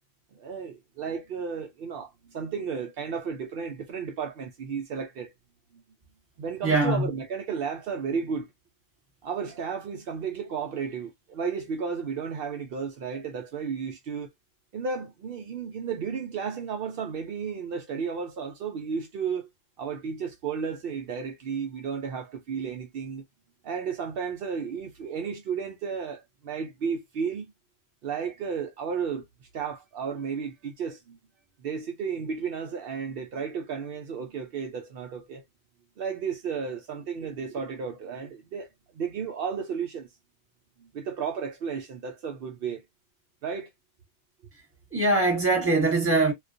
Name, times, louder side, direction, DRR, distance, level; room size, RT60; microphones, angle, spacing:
voice 1, 0.3-5.3 6.4-8.5 9.2-14.3 14.7-19.5 19.8-23.2 23.6-27.4 28.0-29.2 29.5-31.2 31.6-35.4 36.0-40.1 40.8-42.8 43.4-43.7, right 6 dB, 85° right, 0.5 m, -33 dB
voice 2, 6.6-7.1 44.9-46.3, right 2 dB, 10° right, 1.0 m, -22 dB
2.3 x 2.2 x 2.5 m
omnidirectional pair, 1.6 m